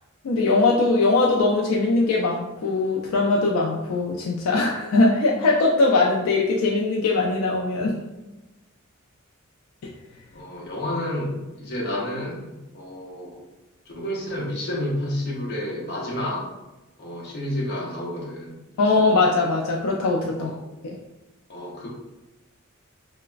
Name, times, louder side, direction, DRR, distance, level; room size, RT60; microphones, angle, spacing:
voice 1, 0.2-7.9 18.8-20.5 20.8-21.0, left 3 dB, 75° left, -2 dB, 0.3 m, -21 dB
voice 2, 10.3-13.4 13.9-16.5 17.0-19.1 20.4-20.7 21.5-21.9, left 1 dB, 50° left, -3 dB, 0.7 m, -30 dB
3.1 x 2.0 x 2.4 m, 1.0 s
head